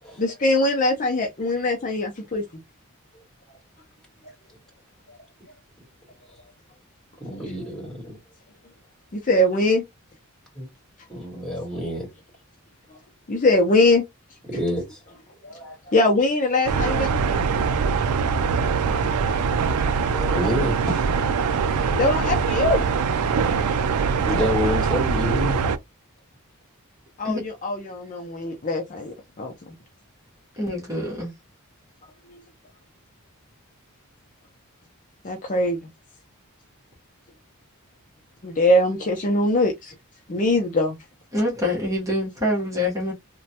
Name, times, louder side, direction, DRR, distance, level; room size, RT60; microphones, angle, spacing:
voice 1, 0.2-2.4 9.1-9.8 13.3-14.0 15.9-17.5 22.0-22.9 27.2-29.5 35.2-35.9 38.4-39.9 40.3-41.0, left 1 dB, 35° left, 0.5 m, -22 dB
voice 2, 7.2-8.2 10.5-10.7 11.1-12.1 14.5-15.0 15.4-15.9 18.9-19.1 19.8-21.0 21.5-22.0 22.2-22.4 24.0-25.7, left 1 dB, ahead, 1.9 m, -29 dB
sound 1, 16.7-25.8, right 5 dB, 80° right, 0.4 m, -23 dB
voice 3, 30.6-31.3 41.3-43.1, left 1 dB, 15° right, 1.0 m, -25 dB
3.1 x 2.2 x 2.8 m
head